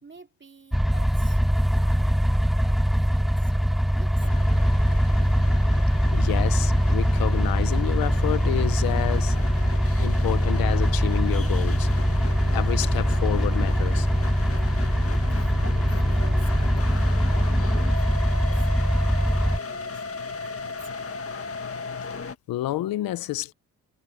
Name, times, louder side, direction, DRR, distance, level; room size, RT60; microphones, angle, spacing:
voice 1, 0.0-4.9 14.8-18.7 19.2-21.5, right 4 dB, 35° right, 3.1 m, -50 dB
sound 1, 0.7-19.6, equal, ahead, 0.3 m, -22 dB
sound 2, 4.2-22.3, left 5 dB, 40° left, 1.7 m, -36 dB
voice 2, 6.1-9.4 10.0-11.9 12.5-14.1 22.1-23.5, left 15 dB, 90° left, 0.9 m, -29 dB
supercardioid pair, 60°, 34 cm